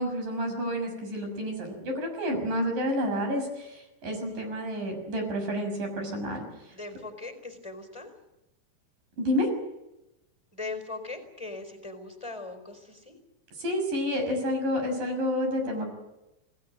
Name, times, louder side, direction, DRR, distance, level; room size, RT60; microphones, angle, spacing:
voice 1, 0.0-6.7 9.2-9.5 13.6-15.9, equal, 50° right, 4 dB, 7.9 m, -29 dB
voice 2, 6.7-8.1 10.5-13.2, left 3 dB, 5° left, 6 dB, 4.1 m, -39 dB
28.0 x 19.5 x 7.8 m, 0.93 s
omnidirectional pair, 4.9 m